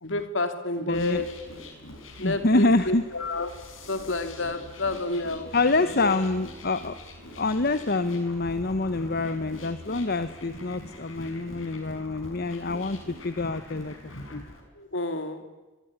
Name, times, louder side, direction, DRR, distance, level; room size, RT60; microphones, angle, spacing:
voice 1, 0.0-1.3 2.2-5.5 6.0-6.1 14.8-15.5, left 2 dB, 70° left, 2.6 m, -30 dB
sound 1, 0.9-14.6, left 1 dB, 85° left, 5.6 m, -44 dB
voice 2, 0.9-1.2 2.2-3.0 5.5-7.0 7.4-14.5, left 2 dB, 50° left, 1.0 m, -26 dB
25.5 x 21.5 x 9.5 m
head